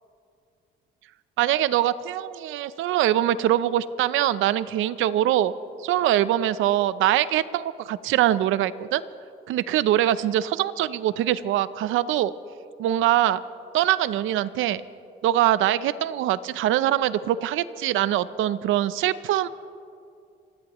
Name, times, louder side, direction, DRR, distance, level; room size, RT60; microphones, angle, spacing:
voice 1, 1.4-5.5 5.8-9.0 9.5-12.3 12.8-13.4 13.7-14.8 15.2-19.5, right 12 dB, 85° right, 16 dB, 0.6 m, -23 dB
26.5 x 16.5 x 3.0 m, 2.4 s
cardioid pair, 90°, 20 cm